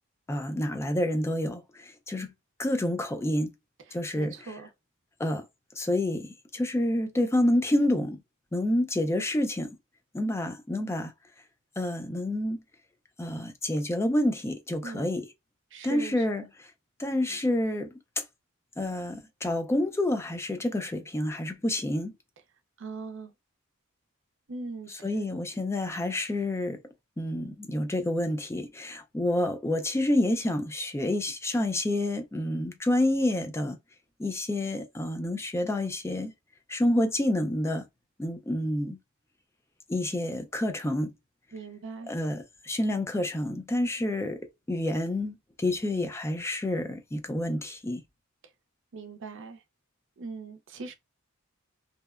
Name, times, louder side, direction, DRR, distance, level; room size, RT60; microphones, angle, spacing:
voice 1, 0.3-2.3 2.6-3.5 3.9-4.3 5.2-5.5 5.8-8.2 8.5-9.7 10.1-11.1 11.8-12.6 13.2-15.3 15.8-16.7 17.0-17.9 18.2-18.3 18.8-22.1 24.9-26.8 27.2-33.8 34.2-36.3 36.7-37.9 38.2-39.0 39.9-41.1 42.1-44.4 44.7-48.0, left 1 dB, 10° left, 0.3 m, -28 dB
voice 2, 4.2-4.7 14.8-15.1 15.7-16.2 22.8-23.3 24.5-24.9 41.5-42.1 48.9-49.6 50.2-50.9, right 4 dB, 60° right, 0.5 m, -40 dB
2.7 x 2.1 x 2.3 m
head